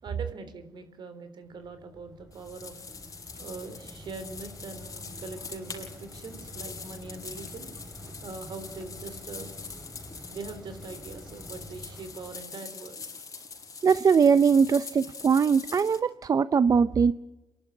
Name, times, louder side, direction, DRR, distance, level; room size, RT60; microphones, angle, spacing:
voice 1, 0.0-2.9 3.4-7.7 8.2-9.5 10.3-13.0, right 3 dB, 70° right, 9 dB, 3.6 m, -42 dB
Mechanisms, 1.5-12.4, equal, 10° right, 3.3 m, -47 dB
sound 1, 2.3-16.0, left 5 dB, 45° left, 5.6 m, -44 dB
voice 2, 13.8-17.1, right 6 dB, 50° right, 14 dB, 0.6 m, -21 dB
28.0 x 11.5 x 9.7 m, 1.0 s
cardioid pair, 75°, 8 cm